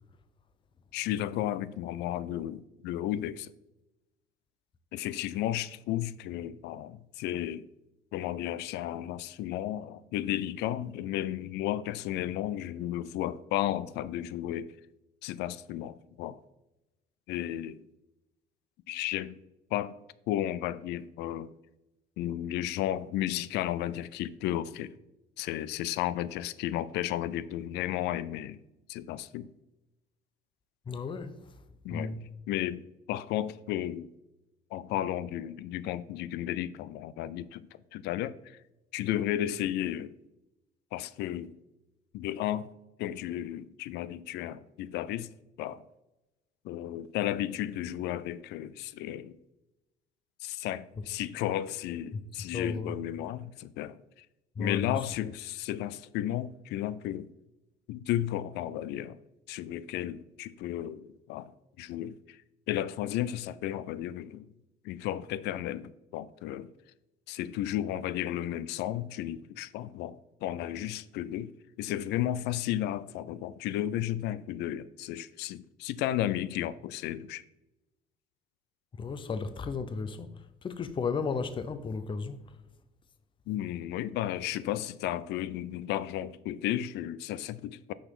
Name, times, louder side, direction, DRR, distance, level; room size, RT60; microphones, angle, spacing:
voice 1, 0.9-3.5 4.9-7.7 8.1-14.7 15.2-16.4 17.3-17.9 18.9-19.4 19.7-19.9 20.3-21.5 22.2-25.0 25.4-28.6 28.9-29.5 31.8-32.1 32.5-34.1 34.7-37.7 37.9-38.6 38.9-40.1 40.9-41.5 42.1-42.7 43.0-45.3 45.6-45.8 46.6-49.4 50.4-54.3 54.6-57.3 57.9-59.2 59.5-61.5 61.8-62.4 62.7-64.5 64.8-66.7 67.3-71.5 71.8-77.4 83.5-87.9, left 12 dB, 85° left, 0.4 m, -33 dB
voice 2, 30.9-31.6 31.9-32.3 51.0-51.1 52.1-52.2 52.5-53.0 54.6-55.1 79.0-82.6, left 5 dB, 30° left, 0.6 m, -34 dB
6.3 x 5.8 x 5.4 m
cardioid pair, 110°, 17 cm